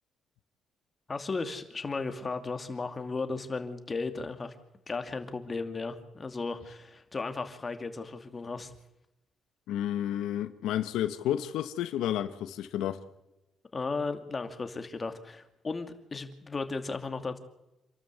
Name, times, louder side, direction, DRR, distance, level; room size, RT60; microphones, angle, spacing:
voice 1, 1.1-4.6 4.9-8.7 13.7-17.4, left 3 dB, 30° left, 2.5 m, -35 dB
voice 2, 9.7-13.0, left 11 dB, 90° left, 1.2 m, -31 dB
27.5 x 13.0 x 8.1 m
cardioid pair, 90°, 0 cm